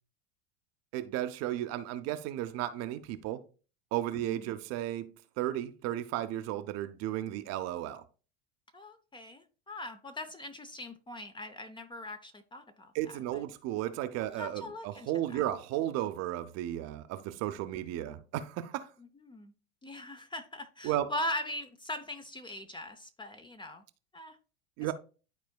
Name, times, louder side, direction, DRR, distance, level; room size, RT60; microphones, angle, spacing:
voice 1, 0.9-3.4 3.9-8.0 12.9-18.9 20.8-21.1 24.8-24.9, right 13 dB, 45° right, 0.7 m, -34 dB
voice 2, 4.1-4.6 8.7-13.4 14.4-15.4 18.0-18.2 19.0-19.5 19.8-23.8 24.1-24.4, left 1 dB, 15° left, 0.6 m, -41 dB
12.0 x 4.2 x 2.3 m
hypercardioid pair, 90°, 38 cm